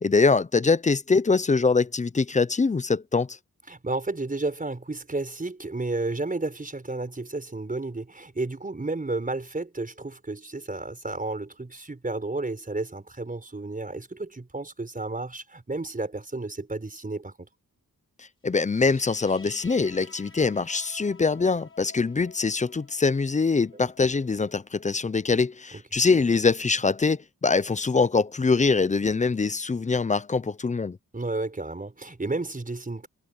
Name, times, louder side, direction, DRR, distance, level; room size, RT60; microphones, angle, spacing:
voice 1, 0.0-3.4 18.2-31.0, left 4 dB, 20° left, 0.4 m, -23 dB
voice 2, 3.7-17.5 25.7-25.8 31.1-33.1, right 2 dB, 25° right, 5.1 m, -32 dB
sound 1, 18.6-25.6, left 4 dB, 35° left, 5.8 m, -52 dB
wide cardioid pair, 155°, 35 cm